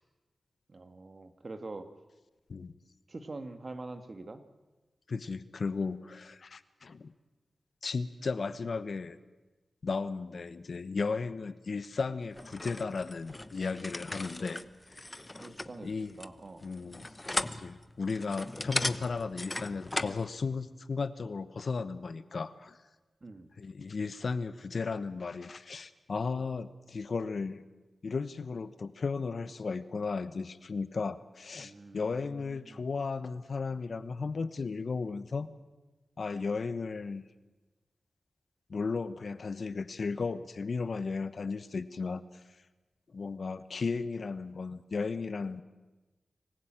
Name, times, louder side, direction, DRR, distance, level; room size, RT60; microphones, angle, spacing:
voice 1, 0.7-1.9 3.1-4.4 15.4-15.9 16.2-16.7 23.2-23.5 31.6-32.9, right 2 dB, 50° right, 8 dB, 1.9 m, -45 dB
voice 2, 5.1-7.1 7.8-9.2 9.8-14.6 15.8-16.2 16.6-17.0 17.5-22.8 23.6-27.6 28.0-35.5 36.2-37.2 38.7-42.2 43.1-45.6, left 4 dB, 65° left, 13 dB, 1.1 m, -35 dB
sound 1, 12.3-20.2, left 2 dB, 25° left, 1.0 m, -38 dB
25.0 x 15.5 x 9.0 m, 1.2 s
cardioid pair, 50°, 0 cm